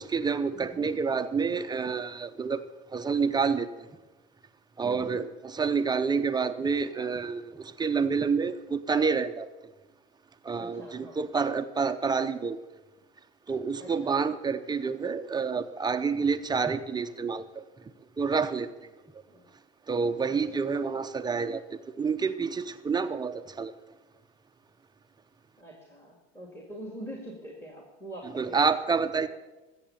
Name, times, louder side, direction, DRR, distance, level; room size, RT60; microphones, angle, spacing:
voice 1, 0.0-2.6 2.9-3.9 4.8-9.5 10.4-12.6 13.5-17.6 18.2-18.7 19.9-21.6 22.0-23.7 28.4-29.3, right 5 dB, 10° right, 9 dB, 0.6 m, -28 dB
voice 2, 0.5-0.9 4.8-5.3 10.5-11.2 13.8-14.1 19.3-19.4 20.3-20.6 25.6-28.6 28.9-29.0, right 1 dB, 5° left, 0 dB, 2.3 m, -44 dB
14.0 x 8.0 x 7.1 m, 1.1 s
supercardioid pair, 110°, 33 cm